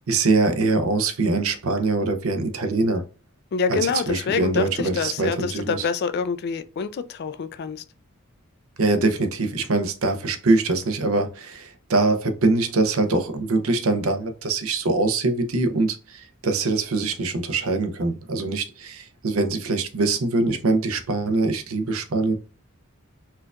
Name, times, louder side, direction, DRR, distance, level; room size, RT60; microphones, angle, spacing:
voice 1, 0.1-3.0 3.7-3.8 4.1-5.8 8.8-22.4, right 3 dB, 75° right, 0.6 m, -23 dB
voice 2, 3.5-7.8, left 5 dB, 50° left, 0.3 m, -26 dB
4.4 x 2.4 x 2.3 m
head